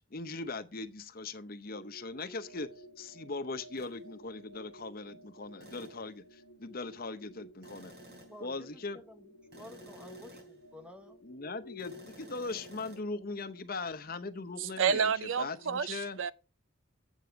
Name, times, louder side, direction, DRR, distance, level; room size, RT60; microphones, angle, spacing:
voice 1, 0.1-2.7 3.0-7.9 8.4-9.0 11.2-15.1 15.4-16.2, left 3 dB, 45° left, 0.8 m, -40 dB
sound 1, 1.7-13.6, left 1 dB, 65° left, 1.1 m, -54 dB
sound 2, 3.8-4.0 5.6-6.1 7.6-8.5 9.5-10.6 11.8-13.0, right 1 dB, 55° right, 4.1 m, -53 dB
voice 2, 8.3-9.3 9.6-11.2, left 1 dB, 5° right, 1.0 m, -52 dB
voice 3, 14.6-16.3, right 6 dB, 70° right, 0.6 m, -30 dB
8.2 x 6.8 x 4.5 m
head